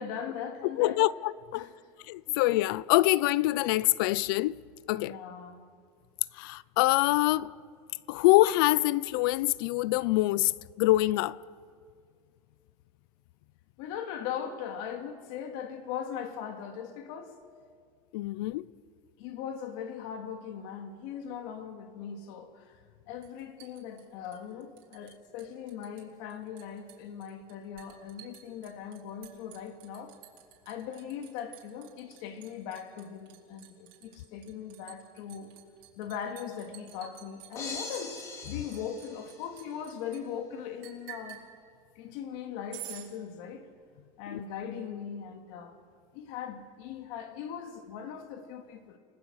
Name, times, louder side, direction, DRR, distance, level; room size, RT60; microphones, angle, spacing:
voice 1, 0.0-1.0 1.5-1.8 2.3-2.4 4.9-5.7 13.8-17.4 19.2-30.1 30.7-35.5 36.0-41.4 42.0-43.7 44.2-45.8 46.1-49.0, left 8 dB, 65° left, 2.4 m, -40 dB
voice 2, 0.8-1.7 2.1-4.6 4.9-5.1 6.4-7.5 8.1-10.5 10.8-11.4 18.1-18.6 44.3-44.4, left 18 dB, 85° left, 0.5 m, -25 dB
Liquid, 23.2-25.1 25.4-26.0 26.3-40.2 40.8-41.4 42.7-43.1, right 14 dB, 90° right, 4.0 m, -49 dB
sound 1, 37.6-39.8, left 3 dB, 25° left, 2.9 m, -42 dB
30.0 x 19.0 x 6.5 m
cardioid pair, 175°, 11 cm